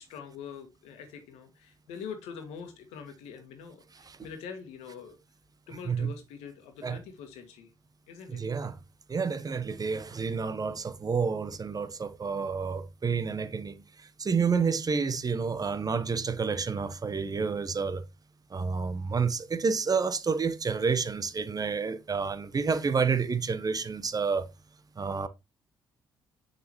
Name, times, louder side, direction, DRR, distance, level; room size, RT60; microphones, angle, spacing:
voice 1, 0.0-5.2 5.7-7.7 8.1-8.5 12.4-12.5, left 6 dB, 80° left, 1.7 m, -44 dB
voice 2, 8.3-8.8 9.1-13.8 14.2-18.0 18.5-24.5 25.0-25.3, right 5 dB, 35° right, 1.0 m, -29 dB
6.8 x 6.6 x 3.1 m
hypercardioid pair, 50°, 11 cm